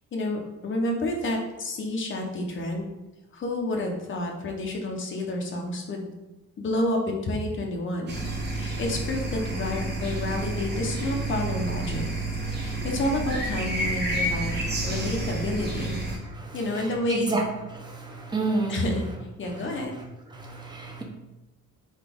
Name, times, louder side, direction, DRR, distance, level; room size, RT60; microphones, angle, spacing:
voice 1, 0.1-2.9 3.3-6.1 6.6-12.0 12.4-14.5 14.8-16.0 16.5-17.4 18.7-19.1 19.4-20.0, left 1 dB, 40° left, 1 dB, 0.8 m, -29 dB
sound 1, 8.1-16.2, right 2 dB, 35° right, 0.9 m, -30 dB
voice 2, 16.4-17.4 17.7-18.8 19.5-20.0 20.3-21.0, right 3 dB, 15° right, 0 dB, 0.6 m, -31 dB
4.1 x 3.5 x 3.5 m, 1.0 s
cardioid pair, 175°, 31 cm